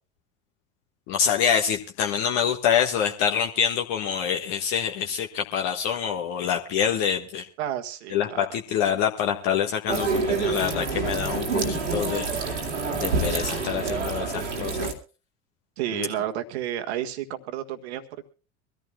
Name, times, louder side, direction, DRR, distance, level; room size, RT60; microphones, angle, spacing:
voice 1, 1.1-7.5 8.1-12.3 12.9-14.9 15.9-16.1, left 8 dB, 50° left, 2 dB, 1.5 m, -26 dB
voice 2, 7.6-8.5 15.8-18.3, right 11 dB, 65° right, 7 dB, 1.6 m, -31 dB
sound 1, 9.9-14.9, right 4 dB, 80° right, 2.2 m, -27 dB
23.5 x 14.5 x 2.2 m, 0.34 s
figure-of-eight pair, 70°, 35 cm